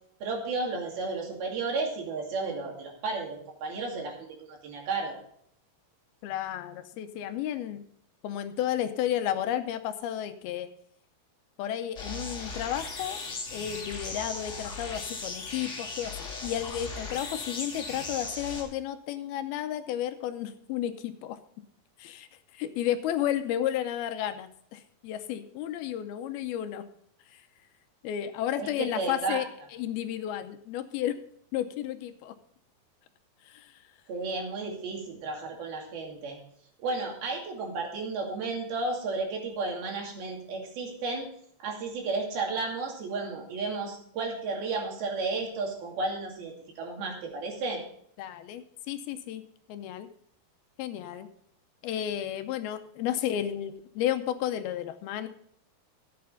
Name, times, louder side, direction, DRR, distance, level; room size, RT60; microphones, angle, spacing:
voice 1, 0.2-5.2 28.6-29.4 34.1-36.4 36.8-41.3 41.6-47.8, right 3 dB, 70° right, 0 dB, 4.3 m, -33 dB
voice 2, 6.2-7.8 8.2-10.7 11.6-13.2 13.5-21.4 22.0-26.8 27.3-27.4 28.0-29.5 29.7-31.2 31.5-32.4 33.5-33.8 34.6-34.7 48.2-49.4 49.7-50.1 50.8-51.3 51.8-55.3, left 11 dB, 80° left, 9 dB, 2.5 m, -32 dB
sound 1, 12.0-18.6, left 3 dB, 35° left, 2.7 m, -38 dB
14.5 x 8.6 x 3.8 m, 0.67 s
omnidirectional pair, 4.6 m